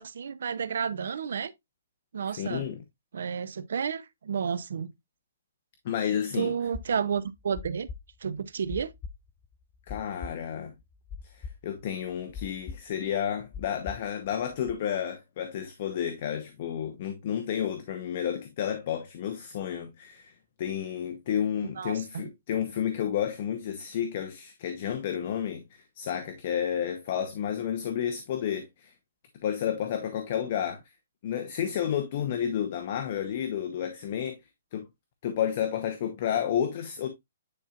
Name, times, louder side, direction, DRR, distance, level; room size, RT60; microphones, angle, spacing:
voice 1, 0.0-1.5 2.1-2.7 3.1-4.9 6.3-7.9 8.2-8.9 21.8-22.2, right 7 dB, 70° right, 0.7 m, -31 dB
voice 2, 2.3-2.8 5.8-6.5 9.9-10.7 11.2-28.9 29.4-30.8 31.2-34.4 34.7-34.9 35.2-37.1, left 9 dB, 40° left, 0.9 m, -31 dB
sound 1, 6.7-14.7, left 5 dB, 20° left, 0.4 m, -41 dB
9.7 x 4.4 x 2.4 m
hypercardioid pair, 165°, 0 cm